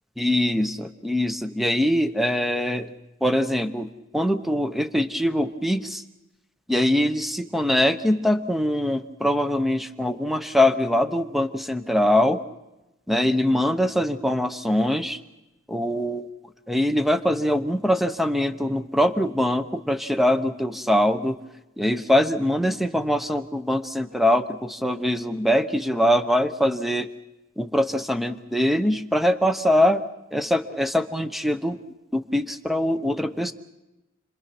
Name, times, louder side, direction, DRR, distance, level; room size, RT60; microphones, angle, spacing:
voice 1, 0.2-2.9 3.2-6.0 6.7-12.4 13.1-15.2 15.7-16.3 16.7-21.4 21.8-27.1 27.6-30.0 30.3-31.8 32.1-33.5, left 1 dB, ahead, 9 dB, 0.9 m, -23 dB
30.0 x 22.5 x 6.1 m, 0.95 s
head